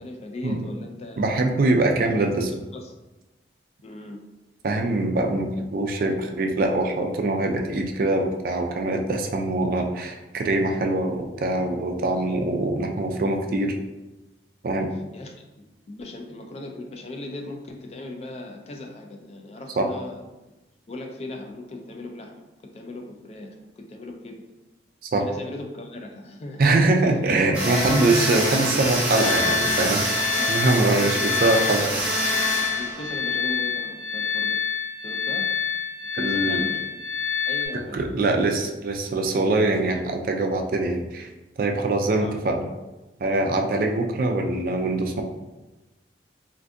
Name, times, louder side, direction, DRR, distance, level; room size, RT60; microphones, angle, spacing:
voice 1, 0.0-1.3 2.7-3.0 3.8-4.2 15.1-20.3 20.9-22.3 22.7-24.4 25.2-26.6 27.9-28.2 30.3-30.6 30.9-31.4 32.8-34.6 35.0-35.5 36.2-36.9 37.4-38.0 42.0-42.3, left 2 dB, 35° left, 3 dB, 0.3 m, -38 dB
voice 2, 1.2-2.5 4.6-13.7 14.6-14.9 19.8-19.9 25.0-25.2 26.6-32.0 36.1-36.7 37.9-41.3 41.6-42.7 43.2-45.2, right 2 dB, 50° right, 3 dB, 0.3 m, -23 dB
sound 1, 27.5-33.5, right 1 dB, 10° right, 0.7 m, -26 dB
sound 2, 29.2-37.7, left 7 dB, 90° left, 0.8 m, -27 dB
2.5 x 2.5 x 3.4 m, 1.0 s
head